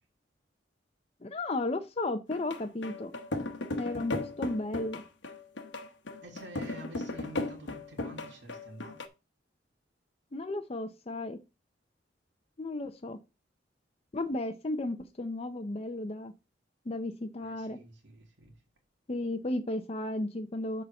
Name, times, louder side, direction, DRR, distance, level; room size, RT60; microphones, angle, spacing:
voice 1, 1.2-3.1 3.8-5.0 10.3-11.4 12.6-13.2 14.1-16.3 16.9-17.8 19.1-20.8, left 2 dB, 35° left, 0.6 m, -34 dB
sound 1, 2.3-9.1, left 2 dB, 70° left, 1.1 m, -36 dB
voice 2, 6.2-9.0 17.4-18.5, right 1 dB, 70° right, 2.2 m, -49 dB
6.6 x 4.2 x 6.4 m
head